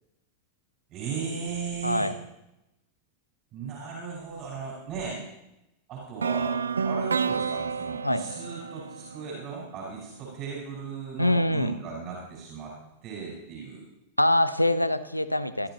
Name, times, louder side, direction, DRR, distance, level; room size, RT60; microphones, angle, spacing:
voice 1, 0.9-2.1 3.5-5.3 5.9-12.7 13.0-13.8, right 5 dB, 35° right, -3 dB, 5.1 m, -36 dB
voice 2, 1.8-2.2 8.0-8.2 11.2-11.7 14.2-15.7, left 1 dB, 85° left, 13 dB, 0.8 m, -24 dB
sarod intro, 6.2-10.2, right 5 dB, 75° right, 0.4 m, -30 dB
23.0 x 13.5 x 3.0 m, 0.90 s
figure-of-eight pair, 90°, 0 cm